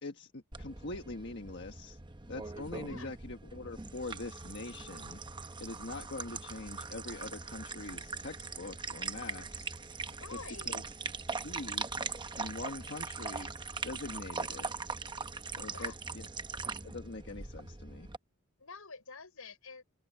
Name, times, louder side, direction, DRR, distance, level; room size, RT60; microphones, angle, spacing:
voice 1, 0.0-2.0 2.3-5.2 5.6-9.7 10.3-10.8 11.4-11.9 12.4-13.5 13.8-14.7 15.5-16.3 16.8-18.1, left 2 dB, 55° left, 1.5 m, -43 dB
sound 1, 0.5-18.2, right 4 dB, 20° right, 0.9 m, -41 dB
voice 2, 10.1-10.7 15.7-16.0 18.6-19.8, left 4 dB, 80° left, 5.6 m, -48 dB
open air
head